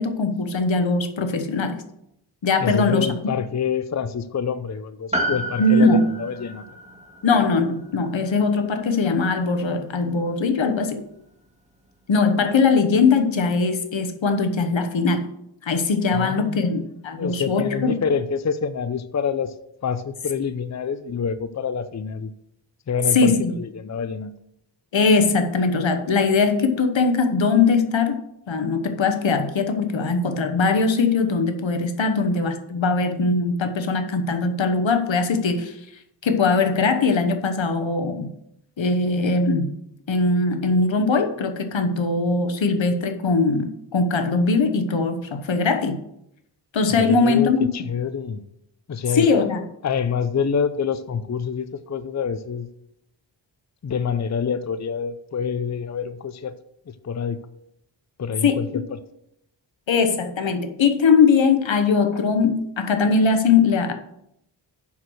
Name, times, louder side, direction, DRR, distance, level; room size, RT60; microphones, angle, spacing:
voice 1, 0.0-1.8 2.4-3.1 5.6-6.0 7.2-11.0 12.1-15.2 15.6-17.9 23.1-23.5 24.9-28.2 28.5-35.8 36.2-38.3 38.8-39.7 40.1-46.0 46.7-47.7 49.2-49.6 58.4-58.6 59.9-63.9, left 4 dB, 85° left, 1.1 m, -20 dB
voice 2, 2.6-6.6 16.1-16.7 17.2-19.5 19.8-22.3 22.9-24.3 46.9-48.4 48.9-49.3 49.8-52.7 53.8-56.5 56.9-57.5 58.2-58.8, left 6 dB, 40° left, 0.6 m, -26 dB
Piano, 5.1-9.7 10.0-10.1, right 1 dB, 15° right, 2.0 m, -32 dB
7.3 x 6.2 x 6.2 m
wide cardioid pair, 65°, 45 cm